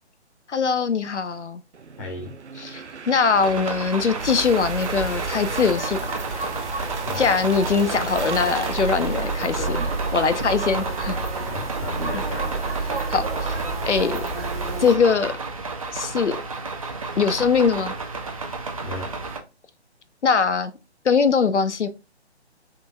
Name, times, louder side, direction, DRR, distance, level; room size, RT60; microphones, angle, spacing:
voice 1, 0.5-1.6 2.6-6.0 6.3-6.5 7.2-9.6 10.1-11.2 13.1-14.2 14.8-15.3 15.9-16.4 17.2-17.9 20.2-20.7 21.0-21.9, left 5 dB, 85° left, 0.6 m, -22 dB
sound 1, 1.7-11.5, right 5 dB, 80° right, 0.6 m, -37 dB
voice 2, 2.0-2.3 7.0-7.2 9.5-9.9 11.5-12.5 18.8-19.1, left 2 dB, 15° left, 0.7 m, -34 dB
sound 2, 3.3-19.4, right 3 dB, 30° right, 0.5 m, -32 dB
sound 3, 4.2-15.0, right 3 dB, 60° right, 1.1 m, -30 dB
3.7 x 3.2 x 2.5 m
figure-of-eight pair, 140°, 34 cm